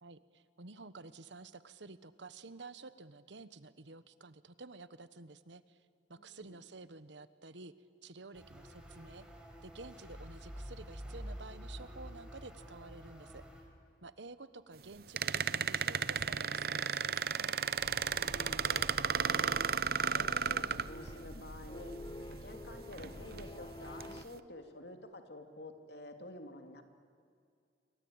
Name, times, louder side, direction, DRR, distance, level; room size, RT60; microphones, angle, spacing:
voice 1, 0.0-5.8 6.1-7.7 8.0-9.2 9.6-13.4 14.0-17.6, right 3 dB, 80° right, 14 dB, 1.2 m, -51 dB
voice 2, 6.2-6.6 18.1-19.6 20.1-21.9 22.4-26.8, left 1 dB, 65° left, 6 dB, 2.7 m, -49 dB
sound 1, 8.3-13.6, equal, 5° right, 4.5 m, -48 dB
sound 2, 15.2-21.4 22.3-22.4 22.9-23.4 24.0-24.2, right 6 dB, 55° right, 0.7 m, -33 dB
sound 3, 17.8-24.2, left 1 dB, 25° left, 0.8 m, -48 dB
28.0 x 24.0 x 8.9 m, 2.4 s
head